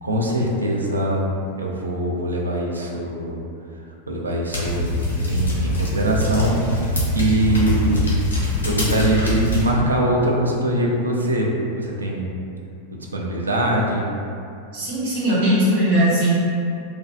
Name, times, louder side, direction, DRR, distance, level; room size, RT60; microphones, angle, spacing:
voice 1, 0.0-1.3 1.6-3.4 4.1-4.8 5.3-12.3 12.9-14.1, right 1 dB, 75° right, -1 dB, 0.3 m, -23 dB
sound 1, 4.5-9.7, left 1 dB, 75° left, 0.6 m, -23 dB
voice 2, 14.7-16.3, right 1 dB, 55° right, -8 dB, 0.7 m, -19 dB
2.3 x 2.2 x 2.5 m, 2.5 s
figure-of-eight pair, 90°, 0 cm